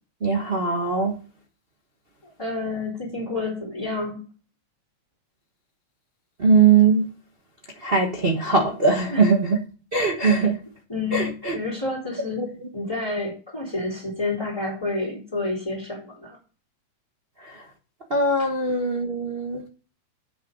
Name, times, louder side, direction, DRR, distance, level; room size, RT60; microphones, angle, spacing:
voice 1, 0.2-1.1 6.4-7.0 7.8-9.6 9.9-10.6 11.1-11.5 12.4-12.5 18.1-19.6, right 4 dB, 65° right, 0.5 m, -20 dB
voice 2, 2.2-4.2 9.1-9.3 10.2-10.5 10.9-11.3 11.5-16.4, left 3 dB, 10° left, 3.1 m, -29 dB
9.5 x 6.5 x 5.0 m
omnidirectional pair, 3.3 m